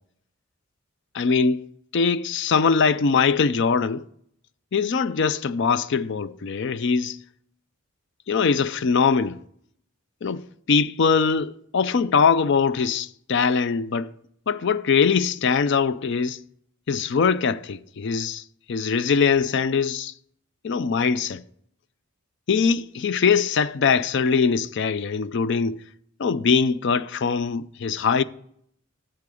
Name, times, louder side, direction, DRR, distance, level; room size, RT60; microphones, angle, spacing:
voice 1, 1.1-1.6 1.9-4.0 4.7-7.2 8.3-9.4 10.2-14.1 14.5-16.4 16.9-18.4 18.7-20.1 20.6-21.4 22.5-25.8 26.2-28.2, left 5 dB, 55° left, 0.4 m, -22 dB
10.5 x 7.8 x 4.9 m
head